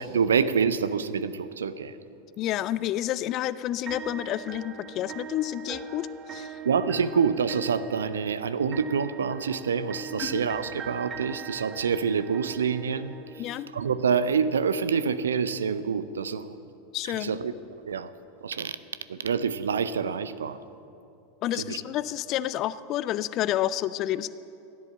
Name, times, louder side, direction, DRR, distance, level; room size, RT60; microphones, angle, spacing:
voice 1, 0.0-2.0 6.6-13.1 13.7-16.6 17.0-17.5 17.9-18.1 18.4-18.8 19.1-20.6 21.5-21.8, right 6 dB, 75° right, 14 dB, 0.6 m, -27 dB
voice 2, 2.4-6.6 10.2-10.4 13.4-13.7 16.9-17.4 21.4-24.3, left 13 dB, 40° left, 16 dB, 0.5 m, -30 dB
sound 1, 3.9-13.9, right 4 dB, 25° right, 1.1 m, -41 dB
15.5 x 10.5 x 6.9 m, 2.8 s
figure-of-eight pair, 85°, 0 cm